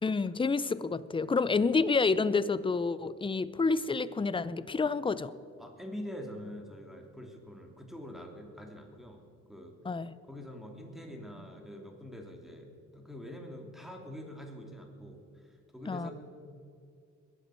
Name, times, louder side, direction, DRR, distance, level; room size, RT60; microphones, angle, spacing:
voice 1, 0.0-5.3 9.9-10.1 15.9-16.1, left 4 dB, 15° left, 16 dB, 0.6 m, -29 dB
voice 2, 5.6-9.2 9.5-9.8 10.3-16.1, equal, ahead, 2 dB, 2.8 m, -45 dB
21.5 x 8.2 x 6.3 m, 2.3 s
cardioid pair, 90°, 30 cm